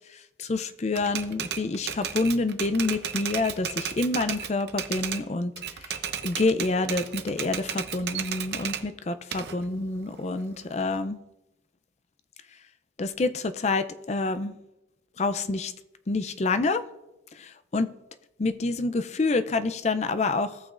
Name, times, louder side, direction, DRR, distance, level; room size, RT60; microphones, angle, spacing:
voice 1, 0.4-5.5 6.2-11.2 13.0-14.5 15.2-15.7 16.1-16.8 17.4-17.9 18.4-20.6, left 3 dB, 35° left, 11 dB, 0.4 m, -27 dB
Typewriter, 0.9-5.2 5.6-8.8 9.3-11.0, right 8 dB, 60° right, 0.7 m, -34 dB
17.0 x 6.3 x 2.5 m, 0.94 s
head